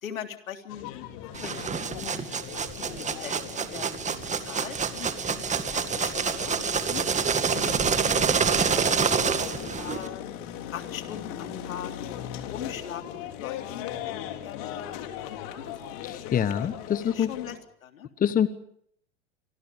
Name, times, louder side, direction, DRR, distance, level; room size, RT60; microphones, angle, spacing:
voice 1, 0.0-0.9 1.2-2.2 2.5-3.4 3.7-4.1 4.4-7.0 7.5-9.4 9.8-10.3 10.7-11.9 12.4-16.0 16.3-16.6 17.0-18.1, left 9 dB, 75° left, 7 dB, 3.5 m, -41 dB
sound 1, 0.7-17.6, left 10 dB, 45° left, 3.7 m, -38 dB
sound 2, 1.3-10.1, right 6 dB, 15° right, 2.1 m, -27 dB
voice 2, 16.0-17.3 18.2-18.5, left 9 dB, 20° left, 15 dB, 1.3 m, -25 dB
29.0 x 25.5 x 5.2 m, 0.67 s
hypercardioid pair, 100°, 41 cm